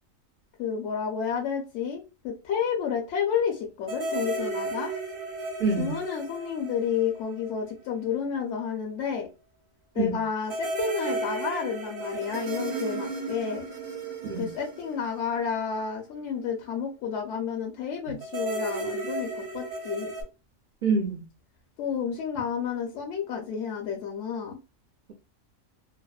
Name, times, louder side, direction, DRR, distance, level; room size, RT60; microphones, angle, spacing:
voice 1, 0.6-4.9 5.8-9.3 10.0-13.6 14.4-20.1 21.8-24.6, left 7 dB, 65° left, 0.8 m, -30 dB
sound 1, 3.9-7.6 7.9-8.0 10.5-15.9 18.2-20.2, right 2 dB, 85° right, 1.2 m, -34 dB
voice 2, 5.6-6.0 10.0-10.2 14.2-14.5 18.1-18.2 20.8-21.2, right 4 dB, 65° right, 0.4 m, -26 dB
2.7 x 2.1 x 2.2 m
omnidirectional pair, 1.4 m